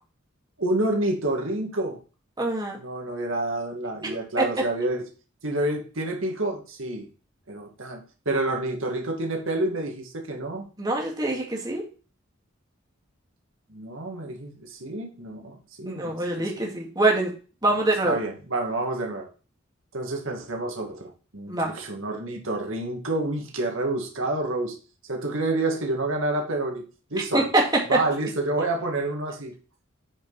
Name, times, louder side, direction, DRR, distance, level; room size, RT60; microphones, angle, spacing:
voice 1, 0.6-2.0 2.8-5.1 5.4-7.1 7.5-10.7 13.7-16.6 17.7-17.8 18.0-19.3 19.9-24.8 25.1-26.8 27.1-27.5 27.9-29.5, right 2 dB, 90° right, 1 dB, 2.1 m, -28 dB
voice 2, 2.4-2.8 4.4-4.5 10.8-11.8 15.9-17.3 17.6-18.2 21.5-21.7 27.3-28.0, right 2 dB, 20° right, -1 dB, 2.2 m, -24 dB
8.9 x 5.3 x 4.1 m, 0.36 s
head